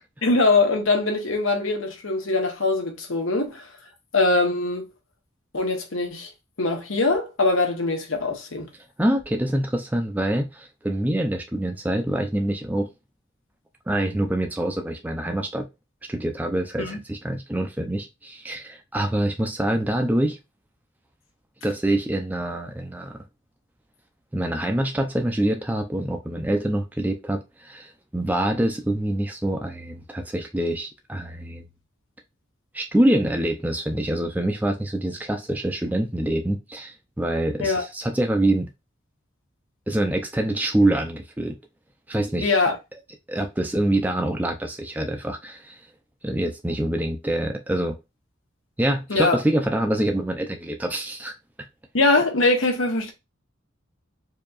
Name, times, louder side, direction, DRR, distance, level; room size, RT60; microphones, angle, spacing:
voice 1, 0.2-3.7 4.1-4.8 5.5-6.3 6.6-8.7 16.8-17.0 37.6-37.8 42.4-42.8 49.1-49.4 51.9-53.1, left 3 dB, 80° left, 1.2 m, -22 dB
voice 2, 9.0-12.9 13.9-15.7 16.1-20.4 21.6-23.2 24.3-31.6 32.7-38.7 39.9-41.5 42.1-42.5 43.3-45.8 46.2-47.9 48.8-51.3, right 1 dB, 10° right, 0.5 m, -25 dB
4.7 x 2.8 x 2.4 m
head